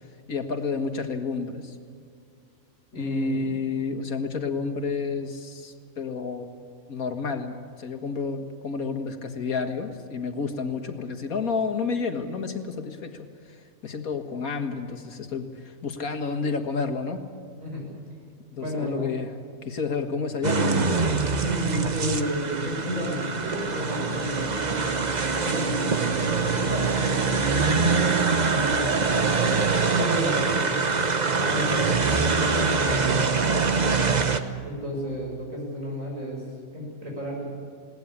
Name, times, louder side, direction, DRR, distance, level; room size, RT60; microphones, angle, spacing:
voice 1, 0.3-1.8 2.9-6.5 6.9-17.3 18.5-19.3 19.6-21.2, left 4 dB, 90° left, 6 dB, 2.1 m, -30 dB
voice 2, 2.9-3.5 17.6-17.8 18.6-19.1 21.4-24.9 25.3-30.7 31.3-33.3 33.7-34.2 34.6-36.4 36.7-37.5, equal, 65° right, -2 dB, 7.7 m, -32 dB
sound 1, 20.4-34.4, right 4 dB, 35° right, 1.0 m, -24 dB
20.5 x 18.0 x 8.8 m, 2.2 s
omnidirectional pair, 1.5 m